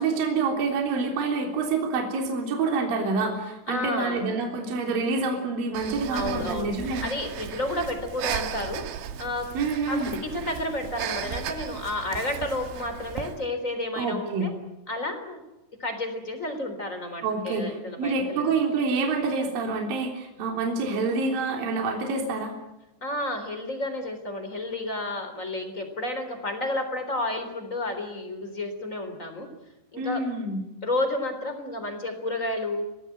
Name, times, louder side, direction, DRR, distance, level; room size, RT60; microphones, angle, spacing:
voice 1, 0.0-7.1 9.5-10.1 14.0-14.5 17.2-22.5 30.0-30.6, right 4 dB, 50° right, 1 dB, 5.0 m, -27 dB
voice 2, 3.7-4.2 6.1-6.7 7.0-8.8 9.2-9.5 9.9-14.5 14.9-15.4 15.8-18.5 23.0-29.5 29.9-30.2 30.8-32.9, left 1 dB, 20° left, 8 dB, 3.4 m, -31 dB
Breathing, 5.7-13.4, right 9 dB, 80° right, 4.0 m, -36 dB
27.0 x 19.0 x 9.3 m, 0.96 s
omnidirectional pair, 5.5 m